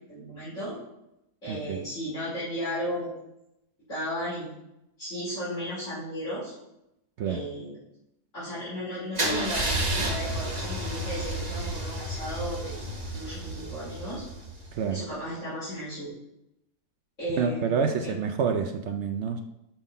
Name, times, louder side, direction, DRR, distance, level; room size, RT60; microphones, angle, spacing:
voice 1, 0.1-0.8 1.4-3.1 3.9-4.6 5.0-6.5 7.3-7.8 8.3-12.7 13.1-14.2 14.9-16.1 17.2-18.2, equal, 45° left, -12 dB, 3.7 m, -35 dB
voice 2, 1.5-1.8 7.2-7.4 14.7-15.0 17.4-19.4, right 6 dB, 70° right, 6 dB, 0.6 m, -28 dB
Car / Engine starting / Idling, 9.2-15.0, right 1 dB, 30° right, 1.2 m, -31 dB
5.9 x 5.6 x 5.4 m, 0.85 s
omnidirectional pair, 1.8 m